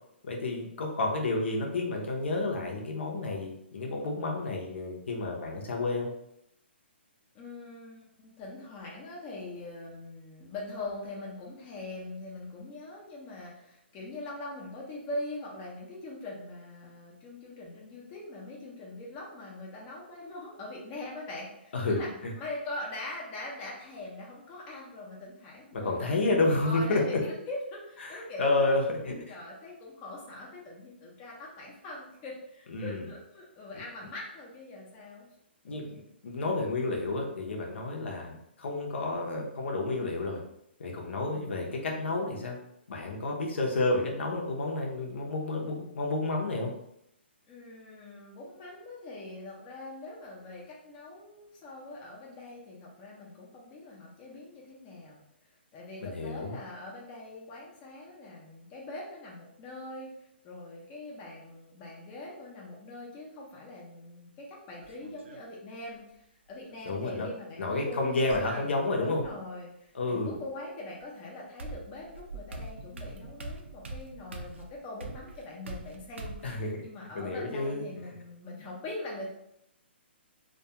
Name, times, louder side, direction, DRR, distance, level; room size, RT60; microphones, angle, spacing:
voice 1, 0.2-6.1 21.7-22.3 25.7-27.0 28.0-29.3 32.7-33.0 35.6-40.4 40.8-42.6 42.9-46.7 56.0-56.6 66.9-67.3 67.6-69.2 69.9-70.4 76.4-76.8 77.1-77.9, left 2 dB, 75° left, 0 dB, 0.6 m, -30 dB
voice 2, 7.3-22.1 22.4-35.3 38.0-38.3 41.3-41.6 47.5-55.2 55.7-60.1 60.4-66.0 66.5-79.3, left 2 dB, 20° left, -4 dB, 0.5 m, -42 dB
sound 1, 64.8-65.4 66.7-67.3 68.3-69.3 71.0-71.1 71.6-76.6, right 2 dB, 85° right, 0.4 m, -43 dB
2.3 x 2.2 x 2.8 m, 0.78 s
hypercardioid pair, 160°, 6 cm